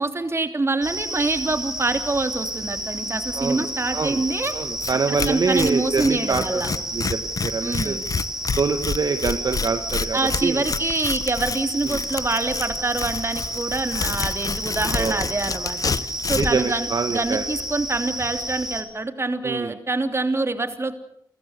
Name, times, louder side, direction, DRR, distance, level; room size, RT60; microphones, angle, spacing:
voice 1, 0.0-4.5 5.1-6.7 7.6-8.0 10.1-15.9 16.3-16.9 17.1-20.9, right 3 dB, 35° right, 7 dB, 3.0 m, -25 dB
sound 1, 0.8-18.8, right 1 dB, 5° right, 5.4 m, -31 dB
voice 2, 3.3-3.7 3.9-4.2 4.5-6.6 6.9-8.0 8.6-10.6 11.8-12.0 14.9-15.3 16.4-17.4 19.4-19.7, right 4 dB, 60° right, 7 dB, 1.6 m, -25 dB
Tearing, 4.4-4.5 4.8-4.9 5.2-16.6, left 5 dB, 50° left, 0.9 m, -29 dB
29.5 x 14.5 x 8.2 m, 0.74 s
cardioid pair, 60°, 8 cm